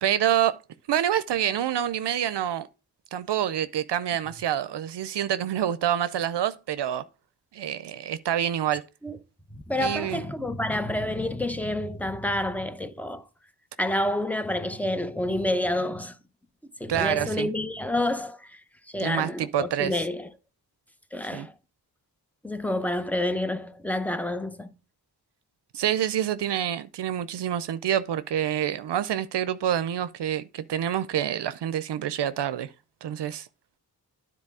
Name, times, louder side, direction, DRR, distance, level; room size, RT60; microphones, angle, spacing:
voice 1, 0.0-0.6 0.9-2.7 3.1-7.0 7.5-8.8 9.8-10.2 16.9-17.5 19.0-19.9 21.3-21.5 25.7-32.7 33.0-33.5, right 10 dB, 80° right, 0.6 m, -27 dB
voice 2, 9.5-13.3 13.8-16.2 16.8-18.6 18.9-20.3 21.1-21.6 22.4-24.7, left 1 dB, 5° left, 0.7 m, -28 dB
9.9 x 4.1 x 4.7 m
wide cardioid pair, 90°, 40 cm